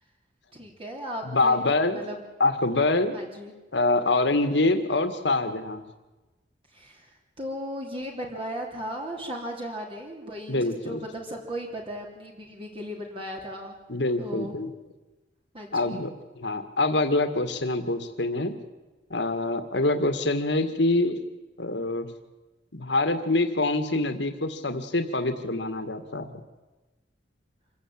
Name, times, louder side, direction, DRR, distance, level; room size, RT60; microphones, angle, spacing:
voice 1, 0.5-1.6 1.9-2.2 3.1-3.5 6.7-7.1 7.4-13.8 14.2-14.6 15.5-16.0, equal, 30° right, 0 dB, 3.4 m, -36 dB
voice 2, 1.2-2.1 2.4-3.2 3.7-5.8 10.5-11.0 13.9-14.7 15.7-18.6 19.1-21.1 21.6-22.1 22.7-26.3, left 2 dB, 70° left, 9 dB, 2.1 m, -25 dB
26.5 x 16.0 x 8.8 m, 1.1 s
head